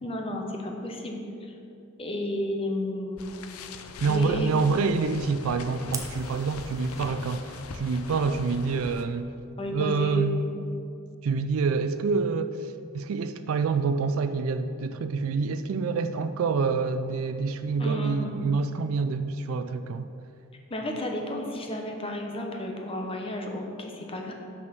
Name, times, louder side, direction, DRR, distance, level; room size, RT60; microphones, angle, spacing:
voice 1, 0.0-1.5 2.0-3.8 4.1-4.5 9.6-10.2 17.8-18.4 20.7-24.3, left 1 dB, 25° left, 2 dB, 0.9 m, -33 dB
sound 1, 3.2-9.1, left 4 dB, 90° left, 0.5 m, -42 dB
voice 2, 4.0-9.3 9.7-10.4 11.2-20.1, right 4 dB, 70° right, 10 dB, 0.4 m, -27 dB
Fire, 5.9-7.1, right 4 dB, 15° right, 0.6 m, -40 dB
6.2 x 6.1 x 6.1 m, 2.6 s
head